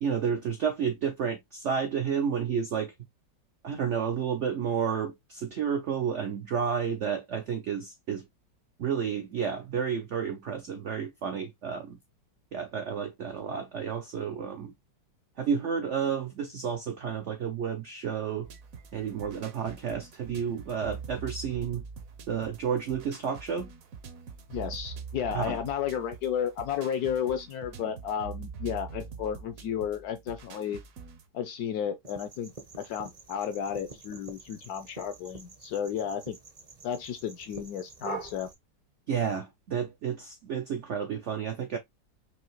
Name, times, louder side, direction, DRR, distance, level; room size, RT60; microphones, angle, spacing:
voice 1, 0.0-2.9 3.6-8.3 8.8-12.0 12.5-14.7 15.4-18.5 18.9-21.8 22.3-23.7 25.3-25.6 39.1-41.8, right 7 dB, 75° right, 0.6 m, -31 dB
sound 1, 18.4-31.3, right 6 dB, 55° right, 1.1 m, -44 dB
voice 2, 24.5-30.8 31.3-36.4 36.8-38.5, left 8 dB, 70° left, 0.9 m, -33 dB
sound 2, 32.0-38.5, right 4 dB, 35° right, 0.6 m, -45 dB
4.8 x 2.7 x 3.0 m
omnidirectional pair, 2.0 m